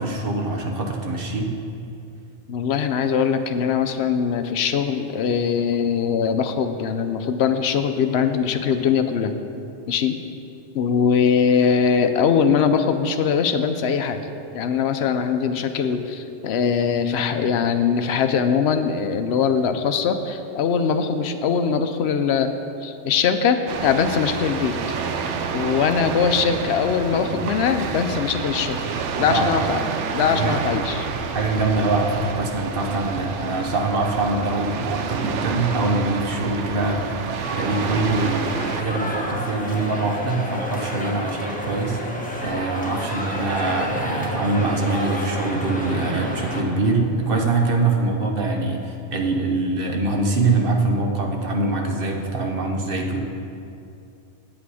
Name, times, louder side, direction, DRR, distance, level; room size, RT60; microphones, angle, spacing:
voice 1, 0.0-1.5 29.3-29.5 30.3-30.5 31.3-42.0 42.4-53.2, right 3 dB, 55° right, 2 dB, 1.1 m, -23 dB
voice 2, 2.5-9.3 9.9-10.2 10.7-14.2 14.5-22.5 22.8-24.8 25.5-28.8 29.2-29.8 30.1-31.1, left 6 dB, 70° left, 8 dB, 0.8 m, -21 dB
sound 1, 23.7-38.8, right 5 dB, 80° right, 1.0 m, -29 dB
sound 2, 37.4-46.6, equal, 5° left, 1.0 m, -30 dB
8.4 x 8.2 x 4.8 m, 2.7 s
omnidirectional pair, 1.2 m